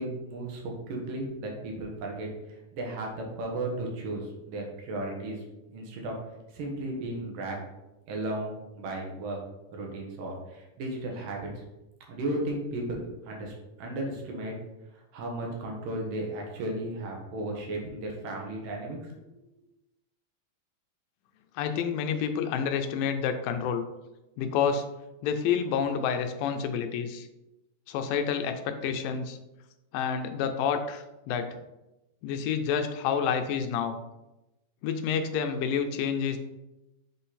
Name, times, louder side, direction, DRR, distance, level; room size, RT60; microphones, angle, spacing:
voice 1, 0.0-2.3 2.7-5.4 5.7-6.1 6.5-7.6 8.1-9.4 9.7-11.6 12.1-14.5 14.9-19.4, right 1 dB, 75° right, 0 dB, 3.0 m, -35 dB
voice 2, 21.6-23.8 24.4-24.8 25.2-27.3 27.9-29.4 29.9-31.5 32.2-34.0 34.8-36.4, left 7 dB, 85° left, 7 dB, 2.4 m, -29 dB
7.8 x 3.9 x 4.1 m, 0.96 s
omnidirectional pair, 3.9 m